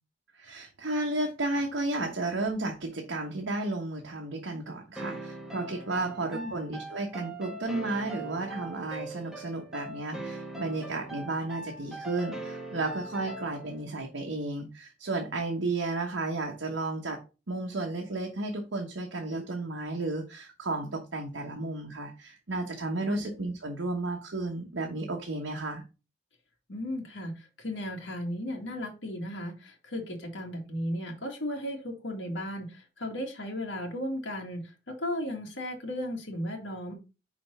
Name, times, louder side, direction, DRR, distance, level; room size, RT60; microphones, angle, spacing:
voice 1, 0.4-17.2 17.5-25.8, right 2 dB, 85° right, 1 dB, 1.1 m, -33 dB
sound 1, 5.0-13.8, right 2 dB, 5° right, 1.5 m, -41 dB
voice 2, 6.0-6.5 23.1-23.2 26.7-36.9, left 1 dB, 75° left, 0 dB, 2.0 m, -35 dB
5.2 x 4.5 x 5.5 m, 0.31 s
head